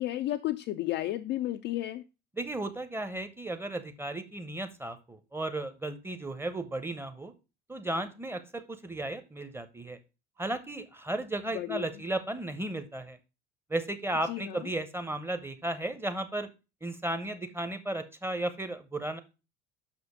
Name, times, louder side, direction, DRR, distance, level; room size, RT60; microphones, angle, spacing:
voice 1, 0.0-2.0 11.5-11.9 14.3-14.7, left 15 dB, 30° left, 7 dB, 0.4 m, -32 dB
voice 2, 2.4-7.3 7.7-10.0 10.4-13.2 13.7-16.5 16.8-19.2, right 1 dB, 5° right, 10 dB, 0.8 m, -34 dB
6.3 x 5.2 x 4.9 m, 0.29 s
figure-of-eight pair, 70°, 36 cm